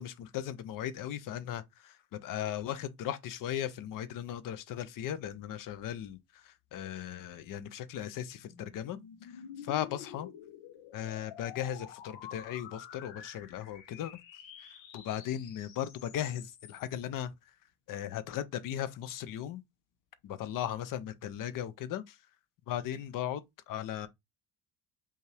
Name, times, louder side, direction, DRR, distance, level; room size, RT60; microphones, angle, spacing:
voice 1, 0.0-10.3 10.9-14.2 14.6-14.7 14.9-17.3 17.9-19.6 20.2-22.2 22.7-24.1, left 11 dB, 45° left, 0.5 m, -37 dB
sound 1, 7.7-17.0, left 9 dB, 75° left, 1.0 m, -49 dB
5.3 x 2.4 x 3.2 m
cardioid pair, 160°, 45 cm